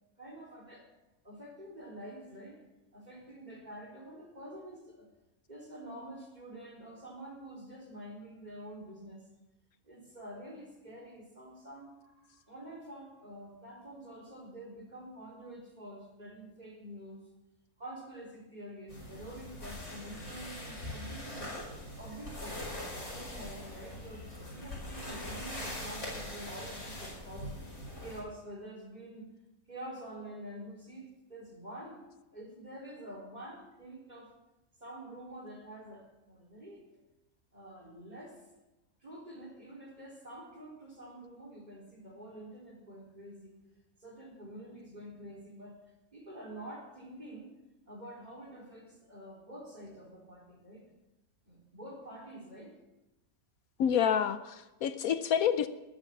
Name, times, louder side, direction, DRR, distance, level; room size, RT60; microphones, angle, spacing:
voice 1, 0.2-0.8 1.2-2.6 2.9-5.1 5.5-9.2 9.8-17.2 17.8-21.5 22.0-22.6 22.9-27.5 28.0-29.3 29.7-32.0 32.3-34.3 34.8-37.0 37.5-38.4 39.0-43.5 44.0-45.7 46.1-47.6 47.9-50.8 51.4-52.7, right 1 dB, 30° right, -1 dB, 4.1 m, -47 dB
sound 1, 18.9-28.2, left 1 dB, 50° left, 5.6 m, -42 dB
voice 2, 53.8-55.7, left 8 dB, 75° left, 11 dB, 1.1 m, -28 dB
19.5 x 8.0 x 7.2 m, 1.0 s
omnidirectional pair, 1.6 m